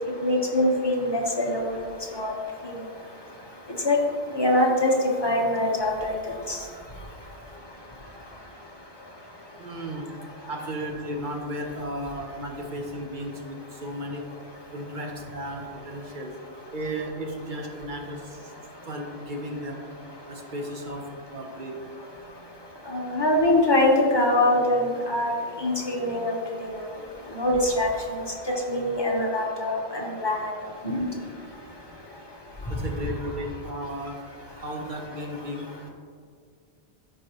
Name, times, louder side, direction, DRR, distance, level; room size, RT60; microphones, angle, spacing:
voice 1, 0.2-1.7 2.2-2.3 2.6-2.7 3.8-4.0 4.3-4.9 5.2-6.2 6.5-6.6 22.9-25.3 25.6-26.3 26.6-26.7 27.3-27.9 28.7-30.5 30.8-31.0, left 1 dB, 25° left, -2 dB, 1.0 m, -23 dB
voice 2, 9.6-10.1 10.5-14.2 14.7-16.3 16.7-18.5 18.9-19.8 20.3-21.0 21.3-21.7 32.7-34.1 34.6-35.7, equal, 45° right, 2 dB, 1.1 m, -34 dB
13.5 x 4.6 x 3.0 m, 2.1 s
omnidirectional pair, 1.2 m